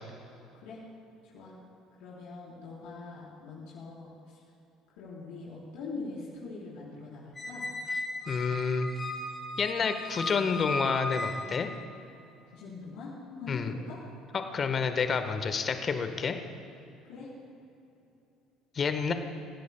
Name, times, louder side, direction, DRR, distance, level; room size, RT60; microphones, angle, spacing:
voice 1, 1.2-1.6 2.0-4.4 5.0-7.7 12.5-14.0 17.0-17.3, left 3 dB, 65° left, -8 dB, 4.1 m, -43 dB
Squeak, 7.4-11.8, left 2 dB, 20° left, 4.2 m, -36 dB
voice 2, 8.3-8.9 9.6-11.7 13.5-13.7 14.3-16.4 18.7-19.1, left 5 dB, 35° left, 8 dB, 1.3 m, -29 dB
27.5 x 16.0 x 2.3 m, 2.8 s
figure-of-eight pair, 55°, 0 cm